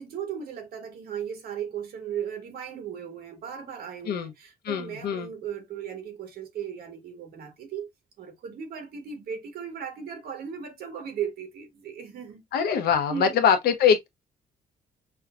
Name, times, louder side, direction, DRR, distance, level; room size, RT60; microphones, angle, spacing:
voice 1, 0.0-7.9 8.2-12.4 13.1-13.4, right 8 dB, 75° right, 1.7 m, -36 dB
voice 2, 4.6-5.3 12.5-14.1, left 7 dB, 80° left, 1.1 m, -23 dB
5.6 x 2.5 x 2.5 m
cardioid pair, 120°, 16 cm